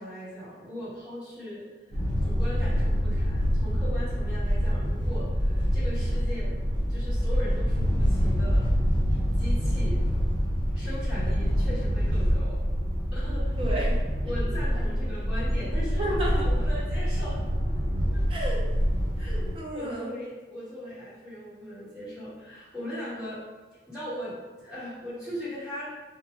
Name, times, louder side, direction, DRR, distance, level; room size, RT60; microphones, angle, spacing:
voice 1, 0.0-6.6 6.9-8.6 9.3-10.0 10.7-12.6 13.1-13.6 14.2-16.0 16.4-17.4 18.1-18.2 19.2-19.4 19.7-23.4 23.9-25.9, equal, 5° right, -15 dB, 1.3 m, -39 dB
sound 1, 1.9-19.5, equal, 30° left, 1.3 m, -26 dB
voice 2, 13.6-14.0 16.0-16.5 18.3-18.6 19.2-20.1, right 1 dB, 30° right, -3 dB, 0.5 m, -32 dB
2.4 x 2.0 x 3.0 m, 1.3 s
head